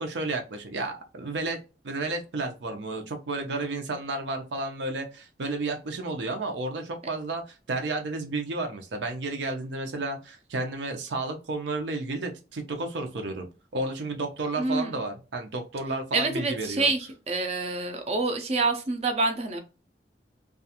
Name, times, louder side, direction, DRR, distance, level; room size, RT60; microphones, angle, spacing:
voice 1, 0.0-1.6 1.8-13.5 13.7-16.9, right 2 dB, 90° right, 4 dB, 0.6 m, -32 dB
voice 2, 14.6-15.0 16.1-19.6, right 3 dB, 35° right, 6 dB, 0.4 m, -27 dB
2.4 x 2.3 x 2.8 m, 0.31 s
head